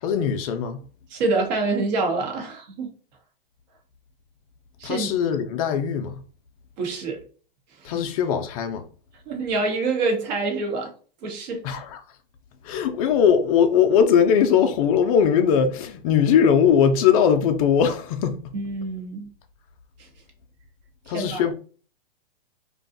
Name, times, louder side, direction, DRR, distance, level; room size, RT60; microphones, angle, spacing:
voice 1, 0.0-0.8 4.8-6.2 7.8-8.8 11.6-12.0 12.6-18.5 21.1-21.5, left 7 dB, 40° left, 0.4 m, -20 dB
voice 2, 1.1-2.9 4.8-5.1 6.8-7.2 7.9-8.0 9.3-10.9 11.2-11.6 18.5-19.3 21.1-21.4, right 3 dB, 50° right, 0.9 m, -26 dB
2.5 x 2.3 x 2.5 m
hypercardioid pair, 125°, 29 cm